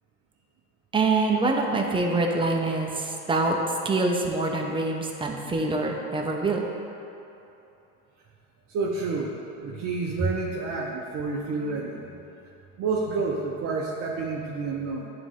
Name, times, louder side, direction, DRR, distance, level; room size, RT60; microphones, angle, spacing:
voice 1, 0.9-3.6 3.8-6.7, right 3 dB, 10° right, 0 dB, 0.8 m, -25 dB
voice 2, 8.7-12.1 12.8-15.1, right 4 dB, 35° right, -3 dB, 0.8 m, -29 dB
10.5 x 3.8 x 3.6 m, 2.9 s
hypercardioid pair, 95°, 43 cm